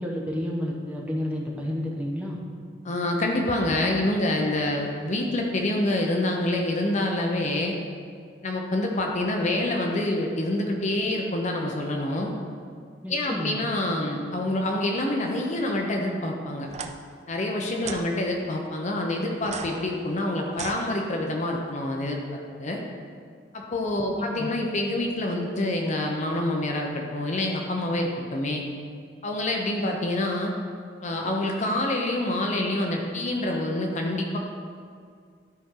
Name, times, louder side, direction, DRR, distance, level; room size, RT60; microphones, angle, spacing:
voice 1, 0.0-2.4 13.0-13.6 24.0-24.5, equal, 5° right, -3 dB, 1.0 m, -30 dB
voice 2, 2.8-7.8 8.4-12.3 13.1-16.7 17.3-22.8 23.5-28.6 29.2-30.5 31.0-34.4, left 1 dB, 40° left, 1 dB, 0.7 m, -27 dB
sound 1, 16.7-16.9 17.8-18.1 19.4-21.4, right 5 dB, 35° right, 0.4 m, -38 dB
12.5 x 4.3 x 3.7 m, 2.2 s
head